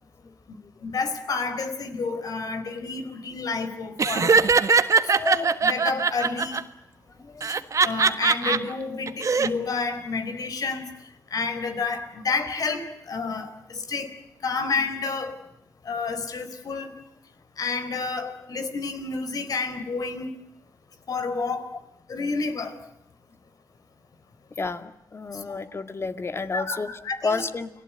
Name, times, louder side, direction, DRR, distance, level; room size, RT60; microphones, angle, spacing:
voice 1, 0.8-4.4 5.0-6.6 7.4-10.9 11.3-14.1 14.4-15.4 15.8-16.9 17.6-20.3 21.1-21.7 22.1-22.8 25.3-25.4 26.5-27.4, left 4 dB, 60° left, 9 dB, 4.3 m, -30 dB
Laughter, 4.0-6.6 7.4-8.6 9.1-9.5, right 5 dB, 50° right, 1.5 m, -20 dB
voice 2, 7.2-7.6 16.9-17.0 24.5-26.9 27.2-27.7, left 4 dB, 40° left, 9 dB, 2.3 m, -31 dB
29.5 x 19.5 x 9.3 m, 0.82 s
cardioid pair, 70°, 7 cm